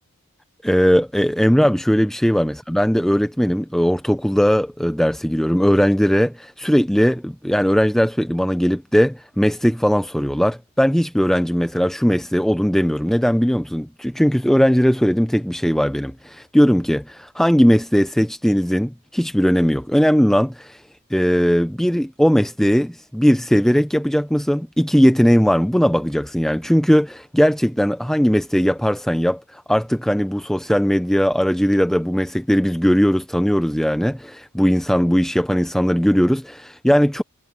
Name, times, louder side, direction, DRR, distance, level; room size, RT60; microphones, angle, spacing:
voice 1, 0.6-20.8 21.1-37.2, equal, ahead, 0.5 m, -18 dB
head